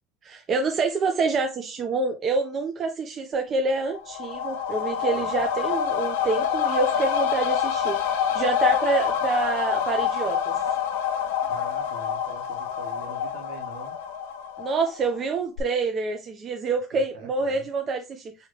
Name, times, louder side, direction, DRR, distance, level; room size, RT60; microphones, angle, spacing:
voice 1, 0.2-10.5 14.6-18.5, right 4 dB, 40° right, 0.7 m, -27 dB
sound 1, 3.8-15.3 15.6-15.7, left 8 dB, 80° left, 0.8 m, -27 dB
voice 2, 5.1-5.4 11.4-14.0 16.9-17.7, right 3 dB, 70° right, 1.7 m, -44 dB
4.7 x 3.1 x 3.2 m
supercardioid pair, 95°, 0 cm